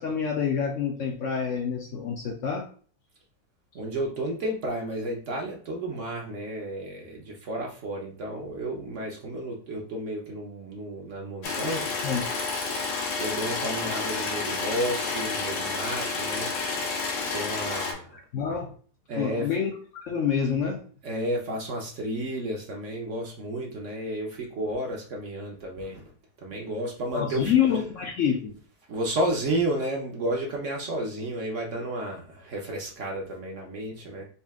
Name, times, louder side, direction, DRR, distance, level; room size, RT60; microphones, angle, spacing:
voice 1, 0.0-2.7 12.0-12.3 18.3-18.7 19.2-19.7 20.0-20.8 27.1-28.6, left 7 dB, 70° left, 2 dB, 0.7 m, -27 dB
voice 2, 3.7-11.9 13.2-16.5 17.3-18.2 19.1-19.5 21.0-26.1 26.4-27.5 28.9-34.2, right 1 dB, 55° right, -1 dB, 0.9 m, -32 dB
sound 1, 11.4-17.9, left 4 dB, 85° left, 1.6 m, -30 dB
4.2 x 2.4 x 3.5 m, 0.42 s
omnidirectional pair, 1.9 m